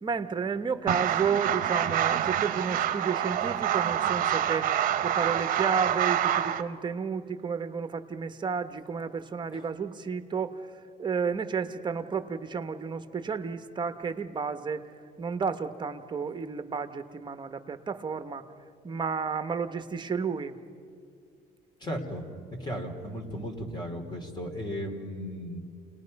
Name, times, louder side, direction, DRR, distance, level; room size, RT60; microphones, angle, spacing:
voice 1, 0.0-4.8 5.0-10.7 11.0-14.9 15.2-18.5 18.8-20.5, right 5 dB, 25° right, 9 dB, 1.1 m, -32 dB
sound 1, 0.9-6.6, right 10 dB, 55° right, 0.8 m, -27 dB
voice 2, 21.8-22.2 22.6-25.6, equal, 25° left, 3 dB, 3.1 m, -35 dB
29.5 x 19.5 x 5.4 m, 2.3 s
cardioid pair, 105°, 17 cm